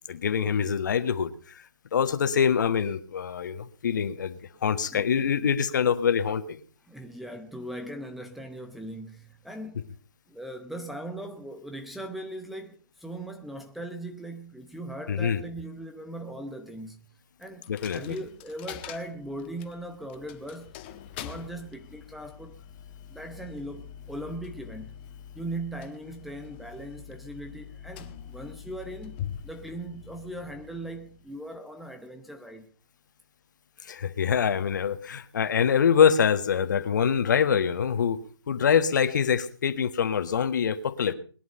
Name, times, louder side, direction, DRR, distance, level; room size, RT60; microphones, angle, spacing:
voice 1, 0.1-1.6 1.9-6.6 15.1-15.4 17.7-18.2 33.8-38.2 38.5-41.1, left 7 dB, 45° left, 1.6 m, -25 dB
voice 2, 4.9-5.3 6.9-9.9 10.3-17.1 17.4-20.8 21.2-22.6 23.1-25.0 25.3-32.7, right 1 dB, ahead, 0.8 m, -39 dB
Coin (dropping), 17.6-31.4, left 9 dB, 25° left, 1.4 m, -44 dB
21.5 x 11.0 x 5.6 m
figure-of-eight pair, 150°, 14 cm